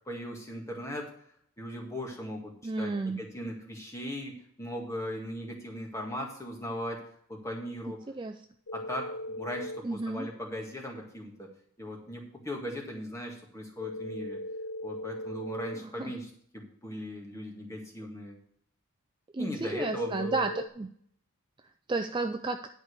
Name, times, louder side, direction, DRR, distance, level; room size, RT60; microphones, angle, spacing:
voice 1, 0.1-1.1 1.6-7.0 7.3-8.0 8.7-11.5 11.8-14.4 14.8-18.4 19.4-20.5, equal, 15° left, 0 dB, 1.8 m, -38 dB
voice 2, 2.6-3.2 8.1-8.4 9.8-10.3 15.7-16.1 19.3-20.9 21.9-22.6, right 3 dB, 20° right, 7 dB, 0.3 m, -32 dB
sound 1, 8.7-9.8 13.8-15.8 19.8-20.7, left 1 dB, 65° left, 0.7 m, -38 dB
11.0 x 4.9 x 6.7 m, 0.63 s
head